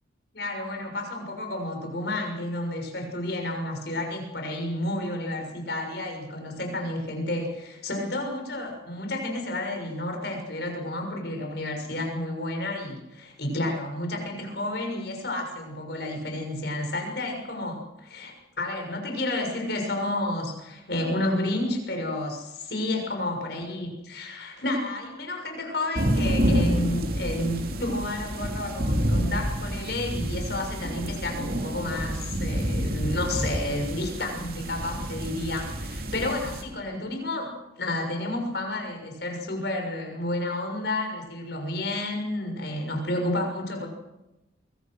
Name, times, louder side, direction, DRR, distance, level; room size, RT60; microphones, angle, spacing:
voice 1, 0.3-43.9, left 1 dB, 55° left, 4 dB, 6.6 m, -31 dB
sound 1, 25.9-36.6, equal, 50° right, 3.2 m, -28 dB
24.5 x 24.0 x 6.4 m, 0.97 s
head